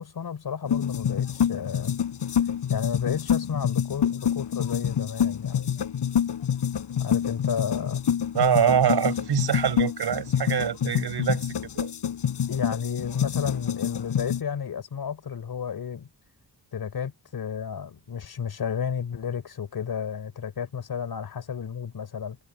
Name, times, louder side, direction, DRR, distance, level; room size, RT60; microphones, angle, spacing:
voice 1, 0.0-1.9 2.7-5.7 7.0-8.0 11.2-11.3 12.5-16.1 16.7-22.4, left 7 dB, 60° left, 3.7 m, -32 dB
sound 1, 0.7-14.4, left 8 dB, 80° left, 5.0 m, -27 dB
voice 2, 8.3-11.9, right 8 dB, 75° right, 5.5 m, -24 dB
wide cardioid pair, 105°, 40 cm